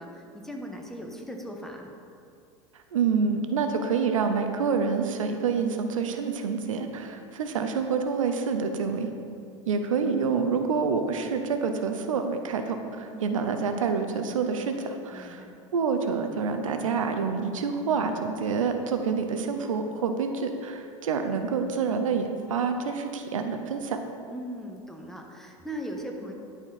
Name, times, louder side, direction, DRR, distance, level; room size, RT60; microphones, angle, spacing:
voice 1, 0.0-1.9 13.0-13.3 15.1-15.5 24.3-26.3, equal, ahead, 1 dB, 1.1 m, -39 dB
voice 2, 2.9-9.1 9.7-15.5 15.7-24.0, right 5 dB, 85° right, 6 dB, 0.6 m, -27 dB
11.0 x 4.4 x 4.1 m, 2.5 s
hypercardioid pair, 90°, 17 cm